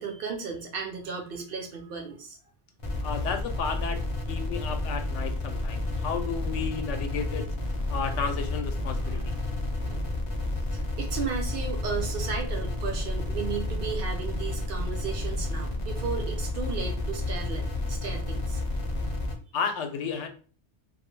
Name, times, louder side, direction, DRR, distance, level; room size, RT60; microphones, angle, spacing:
voice 1, 0.0-2.4 9.0-9.4 9.8-10.3 10.7-18.6, right 5 dB, 60° right, 2 dB, 0.7 m, -35 dB
sound 1, 2.8-19.3, left 2 dB, 40° left, 0.5 m, -31 dB
voice 2, 3.0-4.0 4.3-7.5 7.9-9.4 19.5-20.3, left 6 dB, 90° left, 6 dB, 0.9 m, -32 dB
2.3 x 2.1 x 3.0 m, 0.40 s
omnidirectional pair, 1.2 m